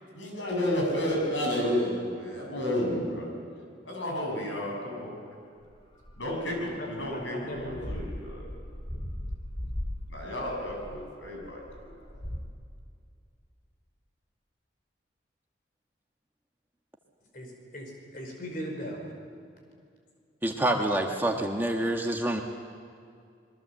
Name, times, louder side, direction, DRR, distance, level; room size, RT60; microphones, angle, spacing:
voice 1, 0.1-3.3 3.8-5.2 6.2-8.4 10.1-11.9, left 1 dB, 75° left, -1 dB, 7.7 m, -31 dB
sound 1, 5.7-6.4 7.0-7.2 7.5-12.4, left 1 dB, 30° left, 2.7 m, -38 dB
voice 2, 6.8-8.0 17.3-19.1, equal, 45° left, 1 dB, 5.2 m, -39 dB
voice 3, 20.4-22.4, right 1 dB, 10° right, 2 dB, 1.3 m, -27 dB
26.5 x 22.5 x 7.7 m, 2.3 s
head